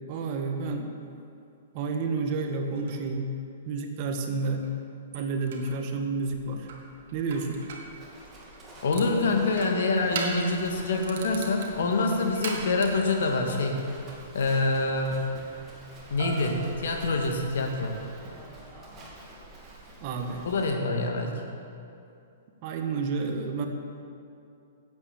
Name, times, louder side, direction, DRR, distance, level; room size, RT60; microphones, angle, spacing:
voice 1, 0.1-0.9 1.7-3.3 3.6-4.7 5.1-6.7 7.1-7.6 20.0-20.5 21.2-21.4 22.6-23.7, right 4 dB, 40° right, 4 dB, 1.4 m, -30 dB
sound 1, 2.7-3.0 4.6-4.7 5.1-5.7 6.7-7.9 8.5-9.1 9.5-10.6 11.0-13.4 16.2-17.5, right 4 dB, 60° right, 1.8 m, -39 dB
Livestock farm animals working animals, 6.3-20.7, right 1 dB, 20° right, 2.6 m, -48 dB
voice 2, 8.8-13.8 14.3-15.2 16.1-17.9 20.4-21.4, left 3 dB, 75° left, 2 dB, 1.8 m, -26 dB
9.5 x 8.1 x 8.4 m, 2.6 s
hypercardioid pair, 145°, 0 cm